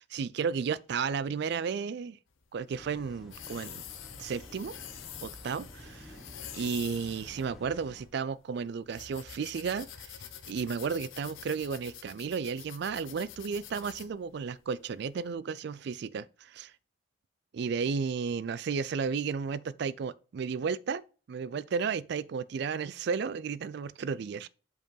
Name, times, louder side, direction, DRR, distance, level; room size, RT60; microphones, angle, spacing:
voice 1, 0.0-2.2 2.5-3.8 4.2-4.7 5.2-5.7 6.0-6.2 6.5-10.2 10.5-16.7 17.5-21.0 21.3-24.5, right 6 dB, 55° right, 0.3 m, -33 dB
sound 1, 2.3-15.3, left 9 dB, 75° left, 0.8 m, -47 dB
sound 2, 2.7-8.1, equal, ahead, 1.4 m, -51 dB
5.4 x 4.6 x 5.5 m
head